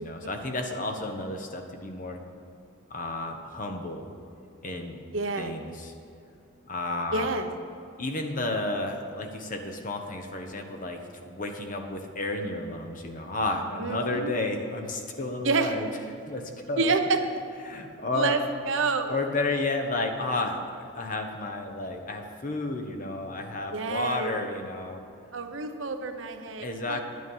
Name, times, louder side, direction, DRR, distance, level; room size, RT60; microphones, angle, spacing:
voice 1, 0.0-2.2 2.9-4.0 4.6-5.0 5.4-5.9 6.7-7.3 8.0-15.9 16.3-17.0 17.6-18.4 19.1-25.0 26.6-27.0, left 2 dB, 40° left, 4 dB, 1.1 m, -32 dB
voice 2, 5.1-5.5 7.1-7.5 13.8-14.3 15.4-15.7 16.8-17.2 18.1-18.4 18.7-19.2 23.7-24.4 25.3-27.0, right 4 dB, 65° right, 6 dB, 0.8 m, -28 dB
10.5 x 9.5 x 5.6 m, 2.6 s
head